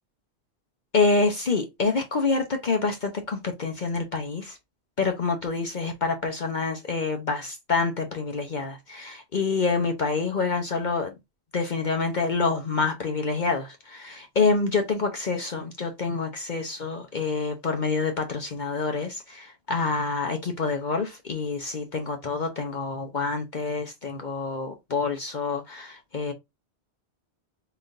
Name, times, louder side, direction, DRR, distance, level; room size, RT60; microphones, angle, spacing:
voice 1, 0.9-4.6 5.0-11.1 11.5-26.3, left 4 dB, 50° left, 0.8 m, -27 dB
3.8 x 3.3 x 2.5 m
omnidirectional pair, 1.1 m